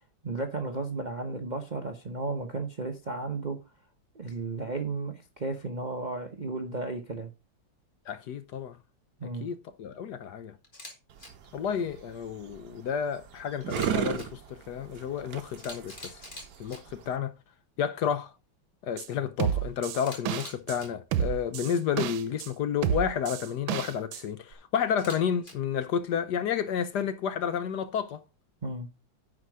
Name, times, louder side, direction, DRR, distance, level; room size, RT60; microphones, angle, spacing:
voice 1, 0.2-3.6 4.1-7.3 9.2-9.5 28.6-28.9, right 3 dB, 40° right, 0.6 m, -34 dB
voice 2, 8.1-8.8 9.4-10.5 11.5-16.2 16.6-17.3 17.8-18.3 18.8-28.2, left 8 dB, 65° left, 1.2 m, -31 dB
Camera, 10.6-10.9 11.2-11.3 13.6-14.3 15.2-15.3 15.6-16.8 20.0-20.9 24.9-25.5, left 1 dB, 25° left, 2.5 m, -44 dB
sound 1, 11.1-17.2, right 9 dB, 60° right, 1.4 m, -36 dB
sound 2, 19.0-19.1 19.4-20.8 21.1-22.5 22.8-24.2 24.5-24.6, right 10 dB, 90° right, 1.5 m, -30 dB
9.8 x 5.1 x 4.8 m
omnidirectional pair, 2.1 m